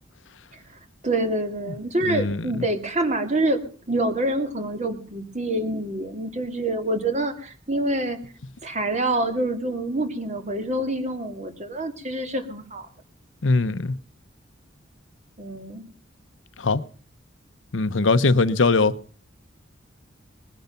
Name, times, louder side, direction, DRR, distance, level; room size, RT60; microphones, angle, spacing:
voice 1, 1.0-8.2 8.6-12.9 15.4-15.9, right 1 dB, 40° right, 2.2 m, -26 dB
voice 2, 2.0-2.5 13.4-14.0 16.6-16.8 17.7-18.9, left 3 dB, 90° left, 0.9 m, -21 dB
20.5 x 10.5 x 5.8 m
head